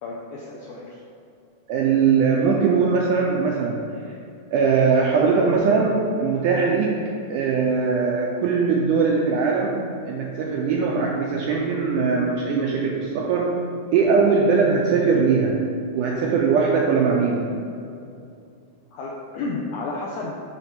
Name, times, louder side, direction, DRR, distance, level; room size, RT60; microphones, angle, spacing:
voice 1, 0.0-1.0 18.9-20.4, left 3 dB, 85° left, -3 dB, 1.7 m, -32 dB
voice 2, 1.7-3.8 4.5-13.6 13.9-15.6 16.0-17.5, right 5 dB, 80° right, -1 dB, 1.8 m, -21 dB
6.7 x 4.1 x 5.8 m, 2.5 s
omnidirectional pair, 4.2 m